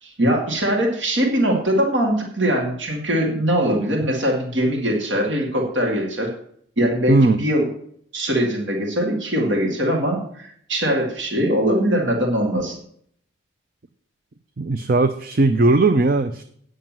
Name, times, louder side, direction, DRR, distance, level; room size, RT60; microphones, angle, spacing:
voice 1, 0.0-6.3 6.8-7.7 8.1-12.8, equal, 70° right, 1 dB, 2.3 m, -21 dB
voice 2, 7.1-7.4 14.6-16.4, right 3 dB, 45° right, 9 dB, 0.5 m, -17 dB
9.2 x 6.4 x 7.4 m, 0.64 s
head